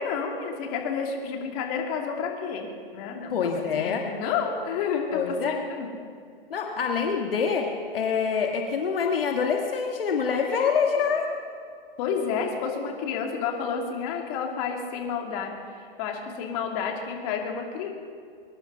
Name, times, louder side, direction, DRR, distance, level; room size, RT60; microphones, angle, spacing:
voice 1, 0.0-5.9 10.5-10.7 12.0-17.9, left 6 dB, 40° left, 2 dB, 2.6 m, -30 dB
voice 2, 3.3-4.0 5.1-5.5 6.5-11.3, left 6 dB, 70° left, 2 dB, 1.8 m, -25 dB
23.0 x 11.5 x 5.5 m, 2.2 s
hypercardioid pair, 125°, 29 cm